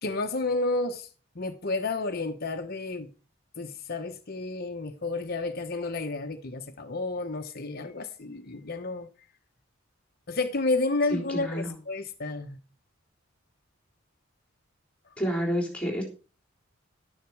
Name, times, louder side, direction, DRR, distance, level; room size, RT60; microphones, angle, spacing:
voice 1, 0.0-3.1 3.5-9.1 10.3-12.6, left 3 dB, 50° left, 1.0 m, -31 dB
voice 2, 11.1-11.7 15.2-16.0, equal, 5° left, 3.6 m, -29 dB
12.5 x 10.0 x 4.8 m
head